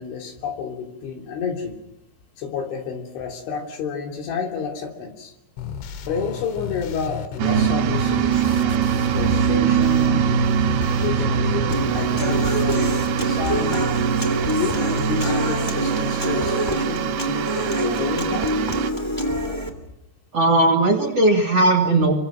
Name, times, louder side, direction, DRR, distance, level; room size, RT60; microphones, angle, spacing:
voice 1, 0.0-1.8 2.4-5.3 6.0-10.3 11.0-13.9 14.6-18.5 19.3-19.4, left 6 dB, 75° left, 1 dB, 5.5 m, -30 dB
sound 1, 5.6-13.6, left 8 dB, 90° left, 4.1 m, -33 dB
sound 2, 7.4-18.9, right 8 dB, 70° right, 2.7 m, -22 dB
Human voice / Acoustic guitar, 11.7-19.7, equal, 5° left, 2.0 m, -26 dB
voice 2, 20.3-22.1, right 2 dB, 40° right, 3 dB, 2.5 m, -17 dB
28.0 x 24.5 x 6.3 m, 0.89 s
omnidirectional pair, 5.5 m